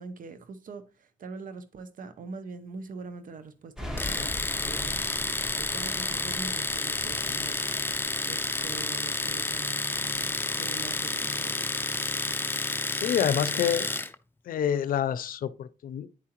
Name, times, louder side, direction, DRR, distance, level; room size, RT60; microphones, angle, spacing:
voice 1, 0.0-5.1 5.6-11.7, right 4 dB, 70° right, 0.7 m, -43 dB
sound 1, 3.8-12.3, left 1 dB, 5° right, 1.5 m, -42 dB
Domestic sounds home sounds, 4.0-14.1, left 2 dB, 15° left, 0.6 m, -30 dB
voice 2, 12.9-13.9 14.5-16.1, left 9 dB, 85° left, 0.5 m, -27 dB
9.9 x 4.8 x 3.0 m
cardioid pair, 65°, 14 cm